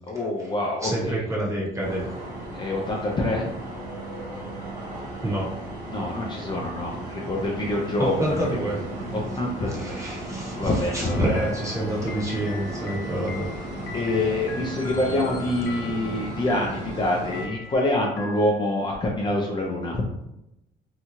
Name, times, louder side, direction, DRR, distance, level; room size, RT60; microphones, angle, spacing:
voice 1, 0.1-1.2 2.5-3.5 5.9-8.7 9.1-9.9 10.6-11.4 13.9-20.0, left 1 dB, 25° left, -2 dB, 0.5 m, -26 dB
voice 2, 0.8-2.1 5.2-5.6 8.0-8.8 9.7-13.5, right 1 dB, 20° right, -5 dB, 1.1 m, -28 dB
sound 1, 1.8-17.5, right 1 dB, 50° right, 1.1 m, -35 dB
sound 2, 11.0-18.9, left 5 dB, 85° left, 0.5 m, -42 dB
2.8 x 2.3 x 2.9 m, 0.84 s
cardioid pair, 110°, 17 cm